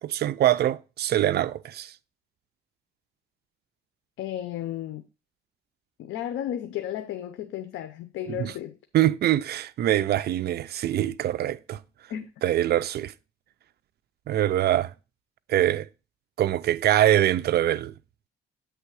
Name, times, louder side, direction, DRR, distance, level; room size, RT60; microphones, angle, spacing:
voice 1, 0.0-1.9 8.3-8.5 8.9-11.8 12.4-13.1 14.3-14.9 15.5-15.9 16.4-17.9, right 12 dB, 55° right, 0.4 m, -24 dB
voice 2, 4.2-5.0 6.0-8.8 12.1-12.3, left 11 dB, 85° left, 0.6 m, -33 dB
8.2 x 3.4 x 4.7 m
cardioid pair, 90°, 20 cm